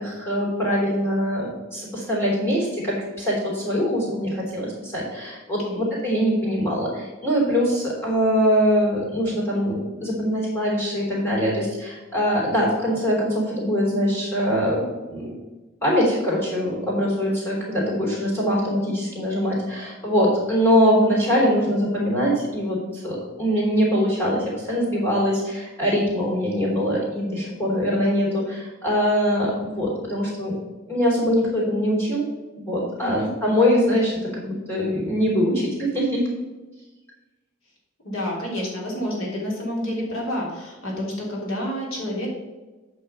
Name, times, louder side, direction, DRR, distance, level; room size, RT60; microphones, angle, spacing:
voice 1, 0.0-15.4 15.8-30.6 30.9-32.3 32.6-36.2, equal, 10° left, -6 dB, 3.4 m, -23 dB
voice 2, 38.0-42.3, equal, 85° left, -2 dB, 3.2 m, -29 dB
8.7 x 5.6 x 5.6 m, 1.2 s
head